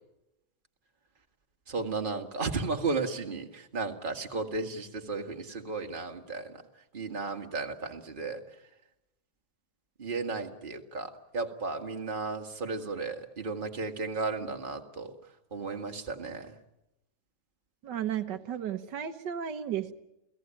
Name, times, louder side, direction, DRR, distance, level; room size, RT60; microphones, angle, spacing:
voice 1, 1.7-6.6 6.9-8.4 10.0-15.1 15.5-16.5, right 3 dB, 30° right, 3 dB, 2.0 m, -34 dB
voice 2, 17.8-19.9, right 9 dB, 90° right, 7 dB, 1.8 m, -34 dB
29.5 x 17.5 x 8.9 m, 0.92 s
omnidirectional pair, 1.8 m